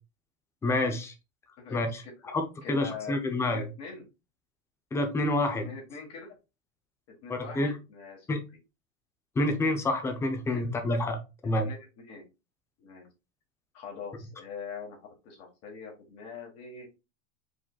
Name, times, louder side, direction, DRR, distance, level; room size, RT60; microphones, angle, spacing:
voice 1, 0.6-1.1 1.7-2.0 2.3-3.6 4.9-5.7 7.3-7.7 8.3-8.4 9.4-11.2 11.4-11.7, left 2 dB, 5° left, 6 dB, 0.4 m, -28 dB
voice 2, 1.6-2.3 2.6-3.1 3.4-4.0 5.6-6.3 7.2-8.3 10.5-10.7 11.4-12.2 12.8-13.1 13.7-16.9, left 5 dB, 35° left, 0 dB, 1.4 m, -43 dB
5.0 x 3.8 x 2.2 m, 0.28 s
supercardioid pair, 145°, 40 cm